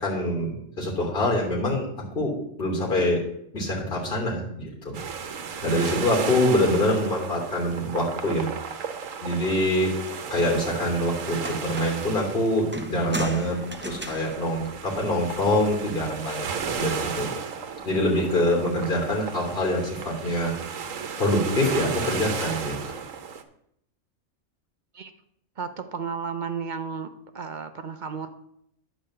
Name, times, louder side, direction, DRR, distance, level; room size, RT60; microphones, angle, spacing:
voice 1, 0.0-1.8 2.1-2.3 2.6-3.2 3.5-5.0 5.6-8.5 9.2-9.9 10.3-13.6 13.8-17.3 17.8-20.5 21.2-22.7, left 1 dB, 45° left, -2 dB, 3.4 m, -25 dB
sound 1, 4.9-23.4, right 6 dB, 85° right, 1.3 m, -34 dB
sound 2, 11.4-12.1 12.7-15.4 16.7-17.1, right 2 dB, 15° right, 0.4 m, -37 dB
voice 2, 25.6-27.1 27.3-28.3, right 6 dB, 45° right, 8 dB, 0.8 m, -33 dB
10.5 x 5.1 x 7.7 m, 0.74 s
omnidirectional pair, 1.3 m